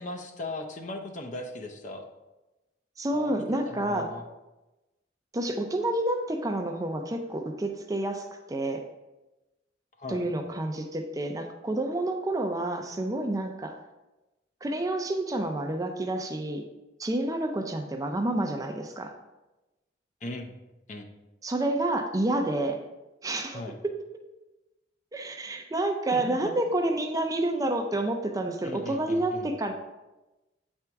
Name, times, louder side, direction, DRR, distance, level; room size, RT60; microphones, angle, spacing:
voice 1, 0.0-2.0 3.1-4.2 10.0-10.2 20.2-20.5 20.9-21.1 23.5-23.7 26.1-26.6 28.6-29.5, left 2 dB, 45° left, 3 dB, 0.7 m, -38 dB
voice 2, 3.0-4.1 5.3-8.8 10.1-13.8 14.6-16.6 17.0-19.1 21.4-22.8 23.2-23.6 25.1-29.7, right 1 dB, 20° right, 4 dB, 0.5 m, -29 dB
7.9 x 4.5 x 3.5 m, 1.0 s
head